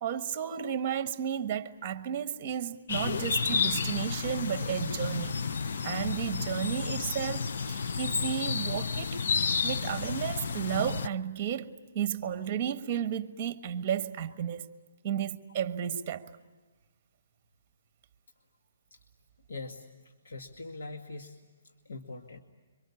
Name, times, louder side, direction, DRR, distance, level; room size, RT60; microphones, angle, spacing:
voice 1, 0.0-5.3 5.8-9.2 9.6-11.7 11.9-14.6 15.0-16.2, right 9 dB, 25° right, 1.4 m, -33 dB
sound 1, 2.9-11.1, left 5 dB, 55° left, 0.8 m, -31 dB
voice 2, 19.5-19.9 20.2-21.4 21.9-22.4, left 3 dB, 80° left, 2.2 m, -42 dB
27.0 x 24.5 x 8.6 m
hypercardioid pair, 170°, 0 cm